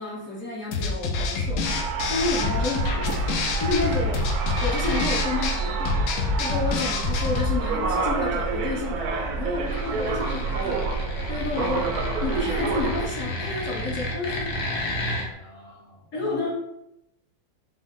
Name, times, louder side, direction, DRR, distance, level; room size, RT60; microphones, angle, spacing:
voice 1, 0.0-1.6 2.1-3.2 3.6-4.2 4.6-6.0 6.4-10.9 11.3-11.9 12.2-14.5 16.1-16.5, left 3 dB, 50° left, -4 dB, 1.2 m, -30 dB
sound 1, 0.7-7.6, left 4 dB, 80° left, 0.7 m, -27 dB
sound 2, 1.6-13.0, right 4 dB, 70° right, 0.9 m, -28 dB
sound 3, 9.6-15.3, left 1 dB, 65° left, 1.4 m, -32 dB
voice 2, 15.3-16.5, equal, 20° left, -4 dB, 0.6 m, -46 dB
6.1 x 2.0 x 3.6 m, 0.84 s
omnidirectional pair, 2.1 m